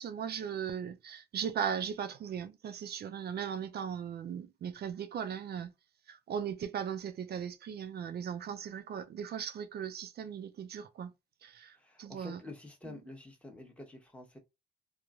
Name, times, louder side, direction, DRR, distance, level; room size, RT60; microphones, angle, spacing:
voice 1, 0.0-5.7 6.1-11.1 11.4-12.4, right 8 dB, 55° right, 0.4 m, -38 dB
voice 2, 11.7-14.4, left 2 dB, 5° left, 1.0 m, -48 dB
3.0 x 2.1 x 2.3 m
cardioid pair, 90°, 20 cm